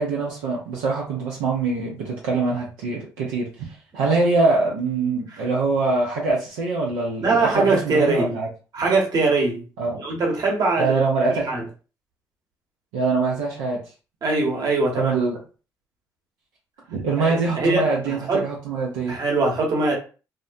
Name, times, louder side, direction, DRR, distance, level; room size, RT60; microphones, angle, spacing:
voice 1, 0.0-3.7 3.9-8.5 9.8-10.0 10.8-11.5 12.9-13.8 14.9-15.4 16.9-19.2, right 3 dB, 85° right, 0.6 m, -23 dB
voice 2, 7.2-8.3 8.7-9.6 10.0-11.0 11.4-11.6 14.2-15.1 17.2-18.4 19.1-19.9, right 3 dB, 55° right, 1.1 m, -22 dB
2.7 x 2.2 x 2.5 m
hypercardioid pair, 55°, 8 cm